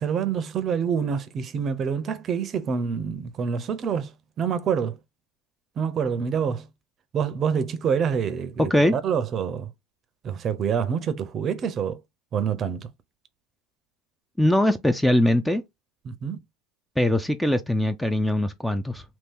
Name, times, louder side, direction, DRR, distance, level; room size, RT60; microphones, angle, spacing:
voice 1, 0.0-5.0 5.8-6.7 7.1-9.7 10.2-12.0 12.3-12.9 16.0-16.4, right 7 dB, 40° right, 0.6 m, -27 dB
voice 2, 14.4-15.6 17.0-19.0, left 1 dB, 5° left, 0.4 m, -21 dB
2.9 x 2.7 x 3.6 m
supercardioid pair, 105°, 0 cm